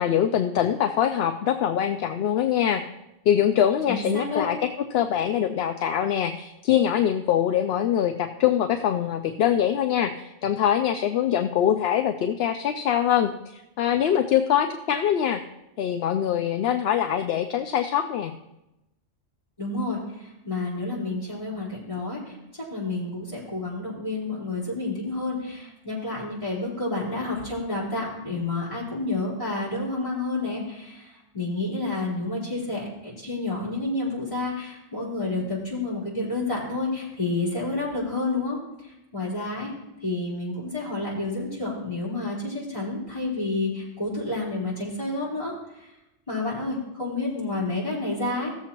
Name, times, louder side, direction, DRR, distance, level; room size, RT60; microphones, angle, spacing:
voice 1, 0.0-2.8 3.3-4.6 4.9-15.4 15.8-18.3, left 10 dB, 65° left, 6 dB, 0.7 m, -23 dB
voice 2, 3.9-4.5 19.6-39.7 40.0-45.9 46.3-48.5, left 2 dB, 25° left, -8 dB, 4.1 m, -30 dB
16.5 x 7.3 x 2.9 m, 0.93 s
omnidirectional pair, 1.3 m